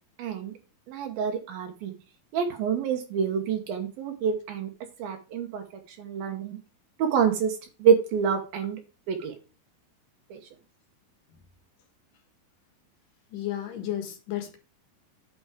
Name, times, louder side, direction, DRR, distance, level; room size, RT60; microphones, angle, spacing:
voice 1, 0.2-0.5 0.9-1.9 2.3-4.7 5.0-6.6 7.0-8.8 9.1-9.3 10.3-10.4, right 7 dB, 75° right, 4 dB, 2.8 m, -27 dB
voice 2, 13.3-14.6, left 12 dB, 65° left, 6 dB, 3.0 m, -33 dB
9.1 x 6.1 x 5.0 m, 0.32 s
omnidirectional pair, 4.5 m